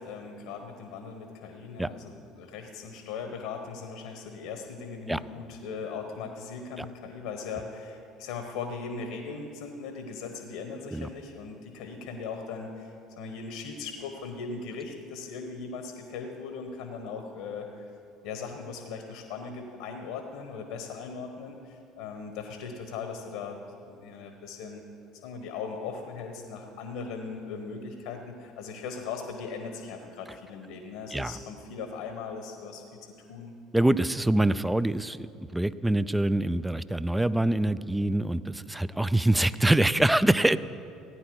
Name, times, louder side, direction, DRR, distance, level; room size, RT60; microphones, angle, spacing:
voice 1, 0.0-17.8 18.2-23.6 23.8-24.8 25.2-32.8 33.3-33.6, left 5 dB, 75° left, 5 dB, 1.1 m, -39 dB
voice 2, 33.7-35.3 35.5-40.6, right 1 dB, 10° right, 16 dB, 0.4 m, -24 dB
15.5 x 9.5 x 4.7 m, 2.6 s
hypercardioid pair, 65°, 0 cm